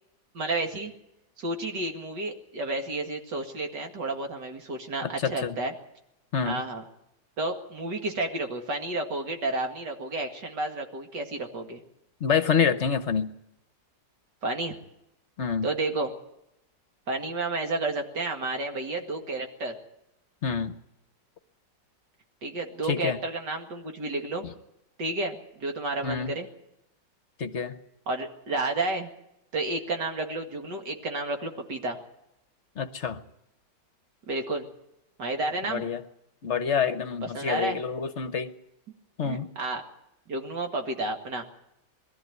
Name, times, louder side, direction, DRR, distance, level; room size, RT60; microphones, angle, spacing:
voice 1, 0.3-0.9 1.4-5.7 6.4-6.8 7.4-11.8 14.4-14.8 15.6-16.1 17.1-19.8 22.4-24.5 25.0-26.5 28.1-29.1 29.5-32.0 34.3-34.7 35.2-35.8 37.2-37.8 39.2-39.8 40.3-41.4, right 2 dB, 70° right, 2.7 m, -31 dB
voice 2, 5.0-5.6 6.3-6.6 12.2-13.3 15.4-15.7 20.4-20.7 22.9-23.2 26.0-26.3 27.4-27.7 32.8-33.2 35.7-36.0 36.4-38.5 39.2-39.5, left 6 dB, 45° left, 1.1 m, -27 dB
21.5 x 13.5 x 9.4 m
omnidirectional pair, 1.9 m